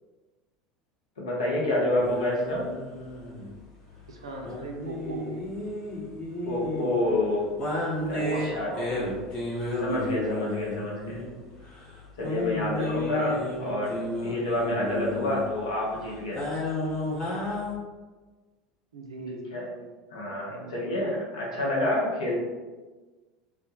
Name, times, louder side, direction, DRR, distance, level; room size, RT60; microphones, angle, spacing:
voice 1, 1.2-2.6 6.4-7.4 8.1-8.7 9.8-11.2 12.2-16.4 19.5-19.7 20.1-22.4, left 1 dB, 75° left, -4 dB, 0.7 m, -28 dB
sound 1, 2.0-17.7, left 1 dB, 40° left, 0.9 m, -33 dB
voice 2, 4.1-5.3 8.0-9.0 18.9-19.9 20.5-21.1, right 2 dB, 80° right, 1 dB, 0.4 m, -38 dB
2.1 x 2.0 x 2.8 m, 1.3 s
figure-of-eight pair, 75°, 3 cm